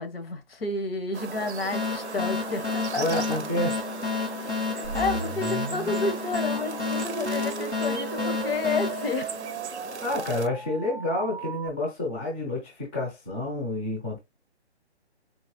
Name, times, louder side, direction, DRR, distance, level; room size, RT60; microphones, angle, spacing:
voice 1, 0.0-3.4 4.4-9.3, left 3 dB, 60° left, 1.0 m, -31 dB
sound 1, 1.1-10.5, right 7 dB, 75° right, 0.5 m, -38 dB
sound 2, 1.7-10.0, left 4 dB, 85° left, 2.5 m, -31 dB
voice 2, 3.0-3.7 10.0-14.2, left 1 dB, 10° left, 0.5 m, -29 dB
sound 3, 4.8-11.7, right 5 dB, 30° right, 0.7 m, -37 dB
3.9 x 2.8 x 2.9 m
figure-of-eight pair, 140°, 34 cm